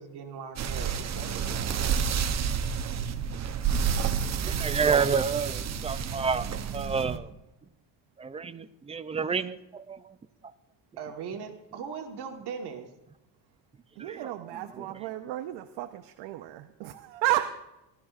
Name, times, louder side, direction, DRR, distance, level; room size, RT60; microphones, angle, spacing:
voice 1, 0.0-1.7 11.0-12.9, right 6 dB, 60° right, 4 dB, 1.6 m, -39 dB
sound 1, 0.6-7.2, right 7 dB, 35° right, 0.8 m, -30 dB
voice 2, 4.4-6.5 6.7-7.3 8.2-10.0 14.0-14.3, right 5 dB, 15° right, 12 dB, 0.3 m, -29 dB
voice 3, 14.0-17.5, right 14 dB, 80° right, 7 dB, 0.8 m, -32 dB
18.5 x 12.5 x 2.5 m, 0.94 s
cardioid pair, 120°, 44 cm